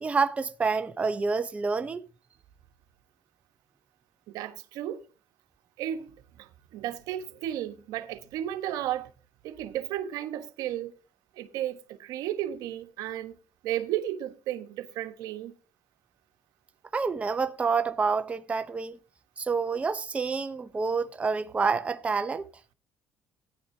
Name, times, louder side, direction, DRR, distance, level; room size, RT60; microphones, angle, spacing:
voice 1, 0.0-2.1 16.9-19.0 19.4-22.5, right 4 dB, 20° right, 0.7 m, -28 dB
voice 2, 4.3-5.0 5.8-9.1 9.4-10.9 11.4-13.4 13.6-15.5, right 12 dB, 80° right, 1.1 m, -34 dB
16.5 x 10.0 x 2.7 m
cardioid pair, 125°, 6 cm